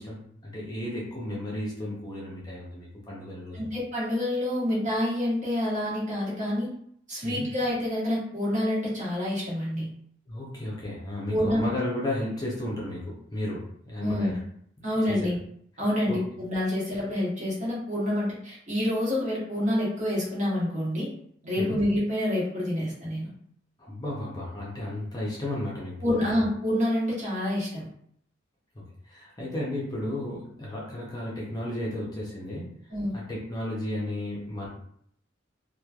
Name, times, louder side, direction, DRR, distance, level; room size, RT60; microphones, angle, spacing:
voice 1, 0.0-3.7 7.2-7.5 10.3-14.4 15.1-15.3 16.1-16.2 21.6-21.8 23.8-26.4 28.7-32.7 33.1-34.7, left 1 dB, 20° left, -5 dB, 0.6 m, -34 dB
voice 2, 3.5-6.7 7.1-9.9 11.3-11.7 14.0-14.3 14.8-15.4 15.8-21.1 21.4-23.3 26.0-27.8 32.9-33.1, left 1 dB, 40° right, -7 dB, 1.1 m, -27 dB
3.0 x 2.2 x 2.3 m, 0.67 s
head